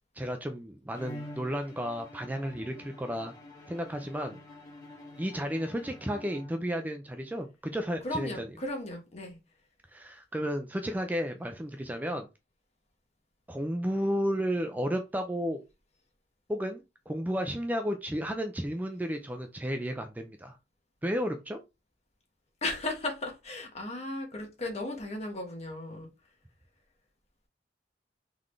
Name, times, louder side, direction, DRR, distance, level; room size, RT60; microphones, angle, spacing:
voice 1, 0.2-3.3 3.7-4.4 5.2-8.3 9.9-12.3 13.5-15.6 16.5-20.6 21.0-21.6, equal, 10° right, 0.4 m, -33 dB
Bowed string instrument, 0.9-6.9, left 1 dB, 20° left, 1.8 m, -48 dB
voice 2, 8.0-9.4 22.6-26.1, left 2 dB, 40° left, 1.3 m, -35 dB
3.8 x 3.6 x 3.2 m
head